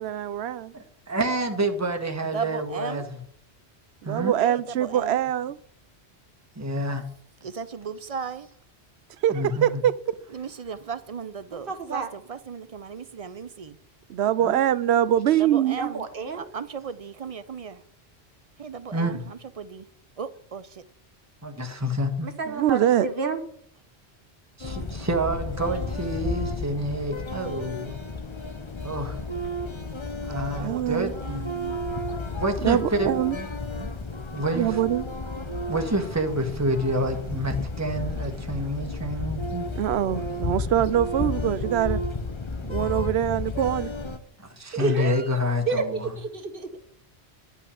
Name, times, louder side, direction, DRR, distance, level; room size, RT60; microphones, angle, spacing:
voice 1, 0.0-0.7 4.0-5.6 9.2-10.0 14.1-15.9 22.5-23.1 30.6-31.1 32.6-33.4 34.5-35.1 39.8-42.0 42.6-43.9, right 11 dB, 75° right, 0.8 m, -23 dB
voice 2, 0.7-3.2 4.0-4.4 6.5-7.0 9.3-9.8 14.4-14.6 18.9-19.3 21.4-22.3 24.6-27.9 28.8-29.2 30.2-31.5 32.4-33.5 33.7-33.9 34.3-34.8 35.7-39.7 44.4-46.2, right 1 dB, 15° right, 1.4 m, -28 dB
voice 3, 2.3-3.0 4.4-5.2 7.4-8.5 10.3-13.8 15.4-16.1 16.3-17.8 18.6-19.9 20.2-20.8 30.4-30.8 31.2-31.8, right 6 dB, 40° right, 0.6 m, -36 dB
voice 4, 11.5-12.1 15.8-16.5 22.2-23.4 44.7-45.3 45.7-45.8 46.2-46.8, right 4 dB, 55° right, 1.5 m, -30 dB
sound 1, 24.6-44.2, left 2 dB, 30° left, 0.8 m, -32 dB
11.0 x 5.6 x 8.5 m
omnidirectional pair, 1.1 m